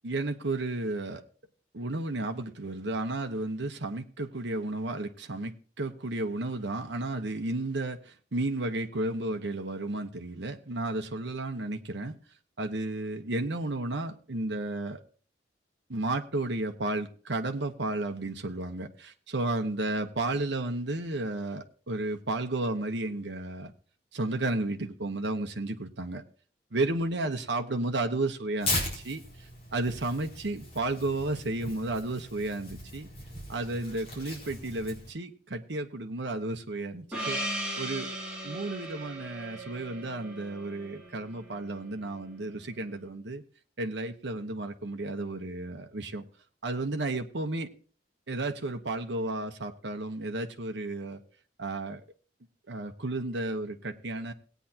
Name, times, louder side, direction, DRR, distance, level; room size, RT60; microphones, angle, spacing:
voice 1, 0.0-1.2 1.7-12.1 12.6-15.0 15.9-23.7 24.1-26.2 26.7-33.1 33.5-37.4 37.8-38.1 38.4-43.4 43.8-46.2 46.6-47.7 48.3-51.2 51.6-52.0 52.7-54.3, right 2 dB, 85° right, 5 dB, 1.1 m, -33 dB
Tearing, 28.6-35.1, left 2 dB, 35° left, 4.3 m, -38 dB
Gong, 37.1-41.9, right 1 dB, 5° right, 3.3 m, -37 dB
18.0 x 9.2 x 2.9 m, 0.41 s
head